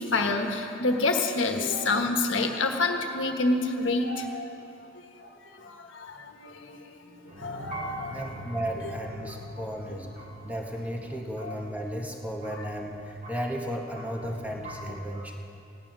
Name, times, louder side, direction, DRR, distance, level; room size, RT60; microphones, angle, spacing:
voice 1, 0.0-4.5 7.4-8.2 9.9-10.0 11.4-11.5, left 3 dB, 75° left, 4 dB, 1.4 m, -27 dB
sound 1, 7.3-15.0, equal, 45° right, 2.0 m, -43 dB
voice 2, 8.1-10.1 10.4-15.5, equal, 10° right, 1 dB, 1.4 m, -34 dB
16.5 x 9.8 x 6.1 m, 2.8 s
head